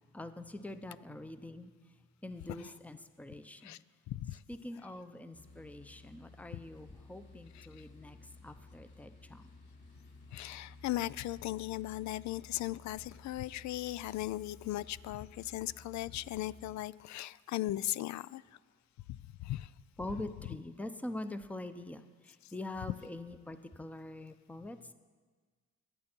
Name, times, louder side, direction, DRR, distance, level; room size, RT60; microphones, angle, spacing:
voice 1, 0.1-1.7 2.2-3.8 4.5-8.2 8.4-9.5 20.0-24.9, left 1 dB, 5° left, 10 dB, 0.7 m, -44 dB
voice 2, 4.1-4.4 7.5-7.8 10.3-18.4 19.1-19.7 22.4-22.5, left 15 dB, 70° left, 20 dB, 0.4 m, -38 dB
sound 1, 5.3-16.8, left 3 dB, 35° left, 4.4 m, -55 dB
24.0 x 8.6 x 4.5 m, 1.5 s
cardioid pair, 90°, 30 cm